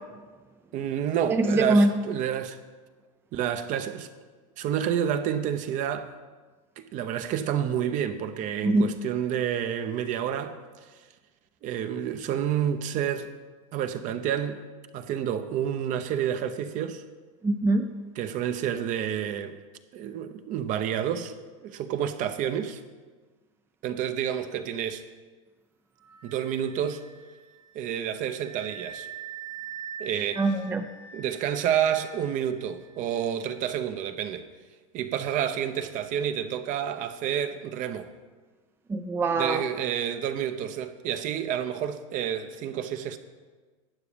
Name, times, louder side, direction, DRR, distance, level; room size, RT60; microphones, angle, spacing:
voice 1, 0.7-2.6 3.3-4.1 4.6-6.1 6.8-10.5 11.6-13.3 13.7-14.6 14.9-17.0 18.1-19.6 19.9-21.3 21.6-22.8 23.8-25.0 26.2-27.0 27.7-29.1 30.0-30.5 31.1-34.5 34.9-38.1 39.3-43.2, right 9 dB, 45° right, 0.9 m, -29 dB
voice 2, 1.3-1.9 8.6-8.9 17.4-17.9 30.4-30.9 38.9-39.6, right 2 dB, 15° right, 0.5 m, -23 dB
Wind instrument woodwind instrument, 26.0-33.4, right 7 dB, 65° right, 4.4 m, -44 dB
12.5 x 8.3 x 5.2 m
supercardioid pair, 130°, 18 cm